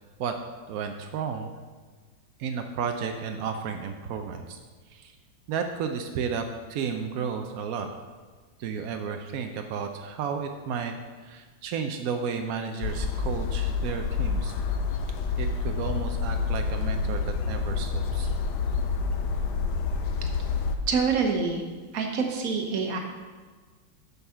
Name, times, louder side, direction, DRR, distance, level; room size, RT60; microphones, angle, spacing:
voice 1, 0.7-1.5 2.4-4.6 4.9-5.1 5.5-6.4 6.7-7.9 8.6-10.9 11.2-14.5 15.4-18.3, right 6 dB, 75° right, 5 dB, 0.8 m, -32 dB
sound 1, 12.8-20.8, left 5 dB, 70° left, 1.2 m, -28 dB
voice 2, 20.9-21.6 21.9-23.0, right 5 dB, 50° right, 3 dB, 1.3 m, -26 dB
8.1 x 5.6 x 5.7 m, 1.5 s
omnidirectional pair, 2.1 m